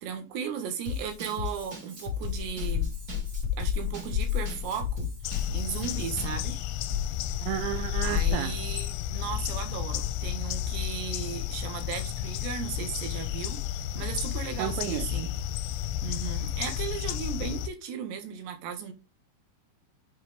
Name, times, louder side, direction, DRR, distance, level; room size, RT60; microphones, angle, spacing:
voice 1, 0.0-2.9 3.6-6.6 8.0-13.6 13.9-15.3 16.0-18.9, right 7 dB, 65° right, 3.3 m, -36 dB
Drum kit / Drum, 0.8-6.4, left 5 dB, 45° right, 1.2 m, -36 dB
sound 1, 2.2-8.3, left 10 dB, 20° right, 0.6 m, -32 dB
sound 2, 5.2-17.7, left 11 dB, 90° left, 3.3 m, -32 dB
voice 2, 7.4-8.6 14.6-15.3, right 13 dB, 80° right, 2.6 m, -32 dB
8.3 x 5.6 x 3.3 m
omnidirectional pair, 5.8 m